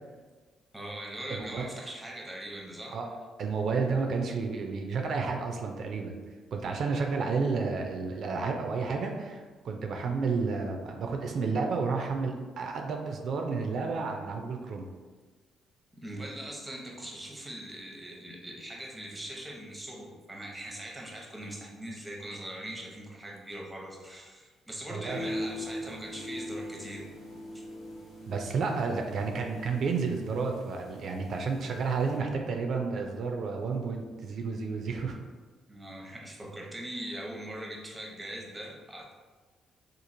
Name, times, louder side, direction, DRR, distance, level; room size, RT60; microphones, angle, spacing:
voice 1, 0.7-3.0 16.0-27.0 35.7-39.1, right 1 dB, 10° right, -2 dB, 0.7 m, -41 dB
voice 2, 1.3-1.7 2.9-3.1 3.4-6.2 6.5-14.9 24.9-25.2 28.3-35.2, right 4 dB, 60° right, 3 dB, 0.3 m, -31 dB
sound 1, 25.1-32.2, left 1 dB, 85° left, 1.0 m, -41 dB
2.9 x 2.4 x 2.5 m, 1.4 s
cardioid pair, 90°, 0 cm